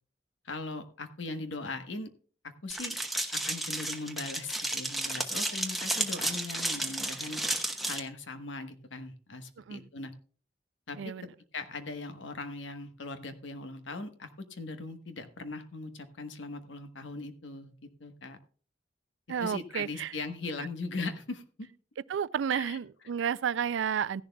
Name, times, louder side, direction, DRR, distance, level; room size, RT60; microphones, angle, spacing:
voice 1, 0.4-2.1 2.4-3.0 3.3-7.4 7.8-10.1 10.9-11.0 11.5-18.4 19.4-21.7 22.5-22.8, left 3 dB, 85° left, 1.2 m, -39 dB
sound 1, 2.7-8.0, right 1 dB, ahead, 1.0 m, -32 dB
voice 2, 11.0-11.3 19.3-20.1 22.1-24.2, right 8 dB, 75° right, 0.4 m, -31 dB
15.5 x 11.0 x 2.3 m
head